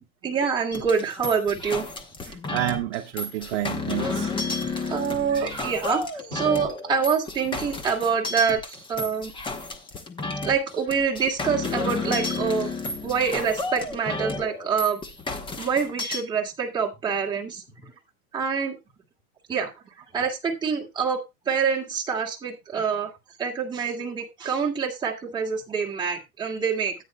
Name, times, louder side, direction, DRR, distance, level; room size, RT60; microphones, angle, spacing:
voice 1, 0.2-1.9 4.0-4.2 4.8-9.3 10.4-12.7 13.0-15.0 15.6-17.6 18.3-18.8 19.5-19.7 20.1-23.1 23.4-26.9, right 6 dB, 10° right, 2.2 m, -26 dB
sound 1, 0.7-16.2, left 3 dB, 10° left, 0.9 m, -32 dB
voice 2, 2.2-4.3 5.1-5.8 6.3-6.4, right 14 dB, 50° right, 0.9 m, -31 dB
13.5 x 9.3 x 2.3 m
supercardioid pair, 155°, 43 cm